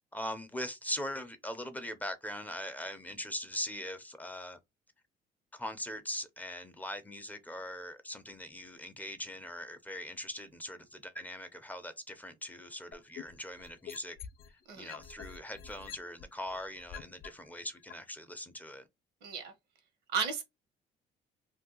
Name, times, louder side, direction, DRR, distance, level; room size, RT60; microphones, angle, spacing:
voice 1, 0.1-4.6 5.5-14.2 14.7-18.8, left 1 dB, 10° left, 0.5 m, -41 dB
sound 1, 12.9-14.5 14.9-17.3 17.9-18.0, left 8 dB, 65° left, 0.6 m, -46 dB
voice 2, 19.2-19.5 20.1-20.4, right 6 dB, 90° right, 1.1 m, -34 dB
2.6 x 2.3 x 3.7 m
cardioid pair, 110°, 17 cm